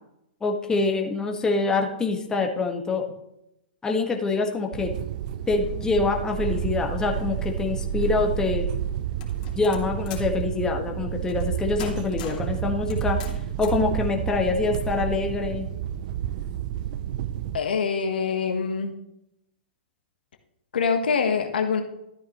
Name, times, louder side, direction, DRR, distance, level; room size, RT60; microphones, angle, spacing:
voice 1, 0.4-3.0 3.8-4.9 5.5-8.7 9.5-13.2 13.6-15.7, left 3 dB, 15° left, 2 dB, 1.6 m, -25 dB
sound 1, 4.7-17.6, right 10 dB, 50° right, 0.5 m, -30 dB
sound 2, 9.2-10.4 11.3-11.5 11.8-12.5 12.9-13.9, left 6 dB, 50° left, 2.8 m, -39 dB
voice 2, 17.5-18.9 20.7-21.8, left 5 dB, 70° left, 5 dB, 1.3 m, -24 dB
13.0 x 9.3 x 3.1 m, 0.83 s
hypercardioid pair, 120°, 5 cm